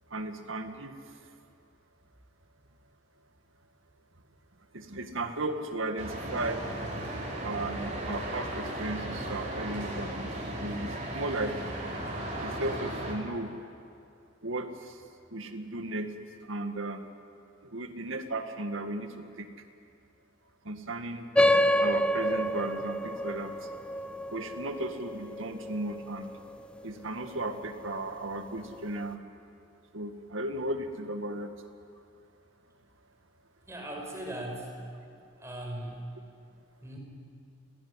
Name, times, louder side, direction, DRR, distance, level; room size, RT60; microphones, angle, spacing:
voice 1, 0.1-1.0 4.7-6.6 7.4-10.3 10.6-11.5 12.4-13.5 14.4-14.9 15.3-16.1 16.5-17.0 17.6-19.5 20.7-21.3 21.8-23.5 24.3-26.3 26.8-29.2 29.9-31.5, right 2 dB, 80° right, 6 dB, 2.1 m, -35 dB
sound 1, 6.0-13.1, right 1 dB, 35° right, 5.1 m, -36 dB
sound 2, 21.4-26.3, equal, 5° left, 0.6 m, -27 dB
voice 2, 33.7-34.7 35.4-36.1 36.8-37.0, right 1 dB, 15° right, 0 dB, 5.4 m, -39 dB
30.0 x 18.5 x 9.9 m, 2.4 s
head